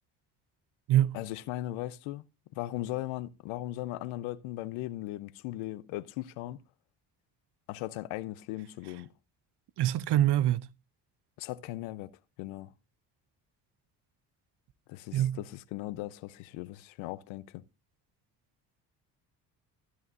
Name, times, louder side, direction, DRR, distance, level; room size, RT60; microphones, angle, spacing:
voice 1, 1.1-2.2 2.6-6.6 7.7-9.1 11.4-12.1 12.4-12.7 14.9-17.6, left 16 dB, 80° left, 0.7 m, -38 dB
voice 2, 9.8-10.7 15.1-15.4, right 12 dB, 60° right, 0.8 m, -25 dB
12.5 x 11.0 x 2.5 m
hypercardioid pair, 60°, 47 cm